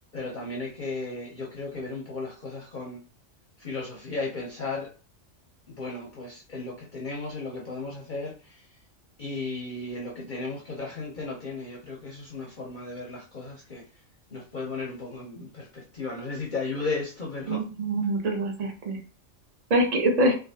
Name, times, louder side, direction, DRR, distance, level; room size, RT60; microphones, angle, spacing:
voice 1, 0.1-3.0 3.6-4.9 5.7-8.7 9.2-13.8 14.3-17.6, left 3 dB, 45° left, -3 dB, 0.7 m, -35 dB
voice 2, 17.5-19.0 19.7-20.3, right 1 dB, 40° right, 1 dB, 0.7 m, -24 dB
3.2 x 2.3 x 2.7 m, 0.36 s
omnidirectional pair, 1.3 m